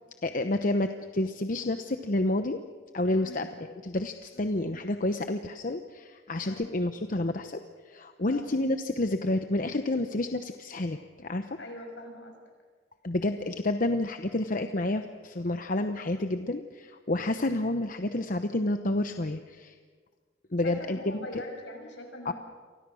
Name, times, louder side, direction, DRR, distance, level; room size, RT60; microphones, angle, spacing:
voice 1, 0.2-2.6 2.9-3.5 3.8-11.5 13.0-19.8 20.5-21.3 22.2-22.3, left 1 dB, 45° left, 8 dB, 0.9 m, -29 dB
voice 2, 11.6-12.3 20.6-22.3, left 2 dB, 70° left, 3 dB, 6.5 m, -41 dB
30.0 x 24.5 x 6.4 m, 1.5 s
head